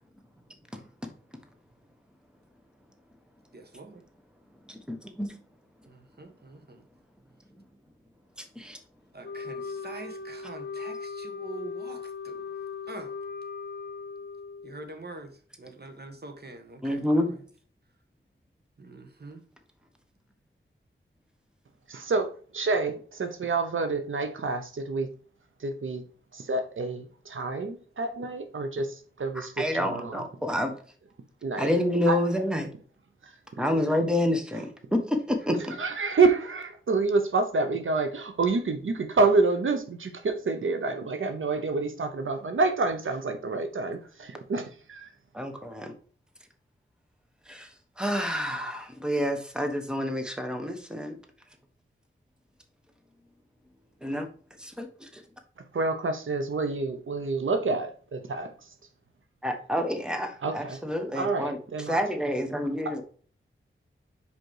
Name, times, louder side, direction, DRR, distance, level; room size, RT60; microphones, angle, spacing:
voice 1, 3.5-4.0 5.9-6.8 9.1-12.4 12.9-13.1 14.6-17.4 18.8-19.4, right 2 dB, 50° right, 1.3 m, -44 dB
voice 2, 4.7-5.3 8.5-8.8 16.8-17.3 29.3-30.7 31.6-32.7 33.6-35.7 45.3-45.9 47.5-47.7 48.0-51.1 54.0-54.3 54.6-55.2 59.4-63.0, left 1 dB, 5° right, 1.3 m, -28 dB
Wind instrument woodwind instrument, 9.2-14.9, left 5 dB, 55° left, 0.7 m, -38 dB
voice 3, 21.9-25.1 25.6-26.0 26.3-28.9 29.2-30.2 31.4-31.7 32.1-32.2 33.7-33.9 35.8-45.1 55.7-58.5 60.4-60.8 61.2-61.9, right 3 dB, 75° right, 0.8 m, -28 dB
5.2 x 5.1 x 4.8 m
wide cardioid pair, 70°, 21 cm